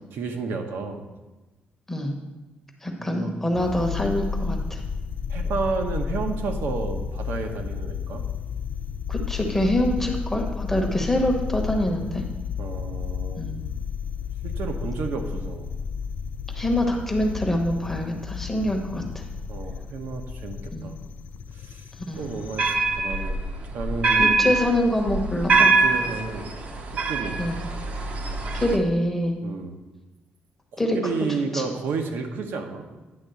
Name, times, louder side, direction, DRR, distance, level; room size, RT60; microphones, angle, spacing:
voice 1, 0.1-1.0 3.0-3.3 5.3-8.2 12.6-13.4 14.4-15.7 19.5-20.9 21.5-21.9 22.2-23.4 23.7-24.4 25.8-26.5 27.1-27.4 29.4-29.8 30.7-32.9, right 4 dB, 70° right, 4 dB, 0.9 m, -31 dB
voice 2, 2.8-4.8 9.1-12.2 13.4-13.6 16.5-19.2 20.7-20.9 22.1-22.3 24.2-25.8 27.4-27.6 28.5-29.4 30.8-31.0 31.5-31.6, left 1 dB, 10° left, 2 dB, 0.9 m, -25 dB
sound 1, 3.5-22.7, left 6 dB, 50° left, 0.4 m, -32 dB
sound 2, 22.2-28.8, right 3 dB, 40° right, 0.7 m, -24 dB
9.6 x 3.6 x 6.8 m, 1.1 s
cardioid pair, 170°, 4 cm